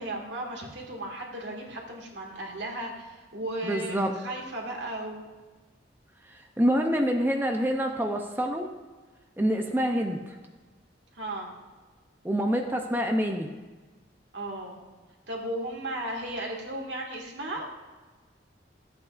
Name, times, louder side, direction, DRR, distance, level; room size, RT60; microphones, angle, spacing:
voice 1, 0.0-5.3 11.1-11.5 14.3-14.8 15.3-17.7, right 1 dB, 80° right, -1 dB, 2.0 m, -35 dB
voice 2, 3.6-4.1 6.3-8.7 9.4-10.2 12.2-13.5, equal, 10° right, 2 dB, 0.6 m, -26 dB
13.5 x 8.5 x 2.5 m, 1.3 s
head